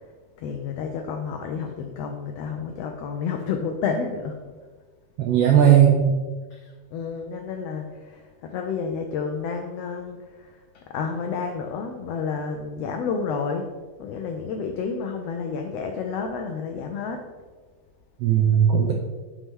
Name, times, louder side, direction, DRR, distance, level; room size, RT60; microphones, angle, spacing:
voice 1, 0.4-4.4 6.5-13.7 14.0-17.3, left 5 dB, 85° left, 4 dB, 1.4 m, -30 dB
voice 2, 5.2-6.1 18.2-18.9, right 9 dB, 85° right, 1 dB, 1.3 m, -17 dB
8.2 x 6.1 x 3.7 m, 1.4 s
omnidirectional pair, 3.6 m